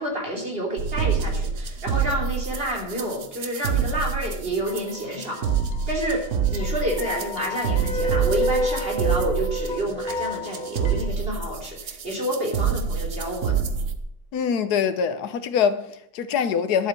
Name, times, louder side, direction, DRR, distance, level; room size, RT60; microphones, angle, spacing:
voice 1, 0.0-5.4 5.9-13.6, right 1 dB, 30° right, 3.6 m, -29 dB
sound 1, 0.8-14.0, right 6 dB, 50° right, 1.1 m, -27 dB
sound 2, 4.6-5.7 6.1-11.1, equal, 35° left, 0.8 m, -30 dB
voice 2, 14.3-16.9, left 7 dB, 65° left, 1.3 m, -24 dB
11.5 x 7.2 x 7.5 m
omnidirectional pair, 1.9 m